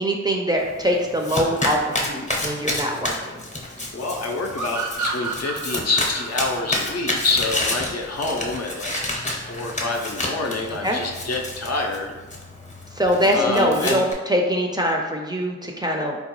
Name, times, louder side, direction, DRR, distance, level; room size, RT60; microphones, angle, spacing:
voice 1, 0.0-3.4 10.8-11.0 12.9-16.2, equal, 15° right, 0 dB, 0.4 m, -23 dB
Domestic sounds home sounds, 0.6-14.1, left 1 dB, 25° left, 0.7 m, -30 dB
voice 2, 3.9-12.2 13.3-14.0, left 3 dB, 55° left, 1 dB, 0.5 m, -27 dB
sound 1, 4.5-7.9, right 4 dB, 80° right, 0.6 m, -31 dB
3.9 x 2.2 x 2.9 m, 1.2 s
cardioid pair, 65°, 30 cm